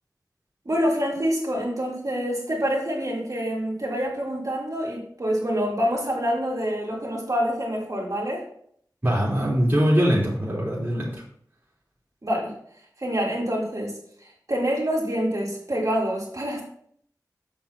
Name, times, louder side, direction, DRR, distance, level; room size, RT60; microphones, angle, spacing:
voice 1, 0.7-8.5 12.2-12.5 13.0-16.6, equal, 55° right, -3 dB, 3.5 m, -26 dB
voice 2, 9.0-11.2, equal, 30° right, -7 dB, 3.2 m, -22 dB
7.8 x 6.9 x 4.1 m, 0.64 s
wide cardioid pair, 50°, 7 cm